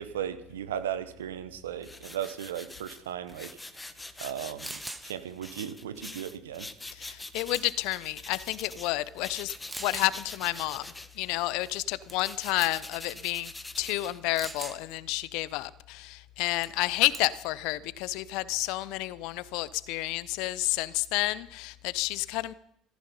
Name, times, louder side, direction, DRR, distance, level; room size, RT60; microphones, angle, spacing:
voice 1, 0.0-3.6 4.2-6.7, right 10 dB, 75° right, 1.0 m, -36 dB
sound 1, 1.8-8.9 9.2-14.6, left 2 dB, 15° left, 1.2 m, -44 dB
sound 2, 4.3-4.4 4.6-5.1 7.1-7.3 7.5-8.0 8.7-8.8 9.7-10.1 12.1-12.3 12.6-12.9 14.4-14.8 16.6-16.8 17.1-17.5, right 2 dB, 15° right, 1.4 m, -40 dB
voice 2, 6.9-9.5 9.8-13.5 13.8-22.5, left 18 dB, 65° left, 0.6 m, -30 dB
15.0 x 14.0 x 5.5 m
figure-of-eight pair, 60°, 0 cm